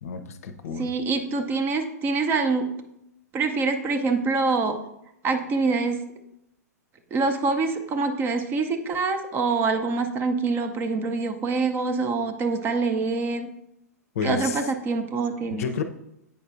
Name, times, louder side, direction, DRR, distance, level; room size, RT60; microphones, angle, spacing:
voice 1, 0.0-0.9 14.1-14.6 15.5-15.8, left 5 dB, 60° left, 8 dB, 0.6 m, -30 dB
voice 2, 0.8-2.7 3.3-4.8 5.2-6.0 7.1-13.5 14.2-15.7, right 4 dB, 25° right, 7 dB, 0.6 m, -25 dB
8.7 x 5.3 x 2.5 m, 0.82 s
figure-of-eight pair, 110°, 9 cm